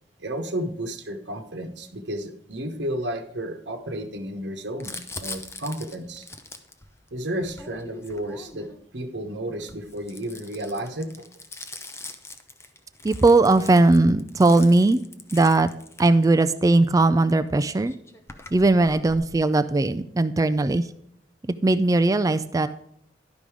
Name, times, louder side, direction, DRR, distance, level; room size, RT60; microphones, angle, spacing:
voice 1, 0.2-6.3 7.1-11.3, right 1 dB, 70° right, 4 dB, 1.2 m, -32 dB
Crumpling crinkling, 4.8-8.8 9.5-16.6 17.5-17.6 17.7-19.3, left 3 dB, 15° left, 0.8 m, -42 dB
voice 2, 13.0-15.0 15.3-15.7 16.0-17.9 18.5-20.9 21.6-22.7, right 2 dB, 20° right, 11 dB, 0.3 m, -19 dB
11.5 x 5.3 x 4.8 m, 0.72 s
head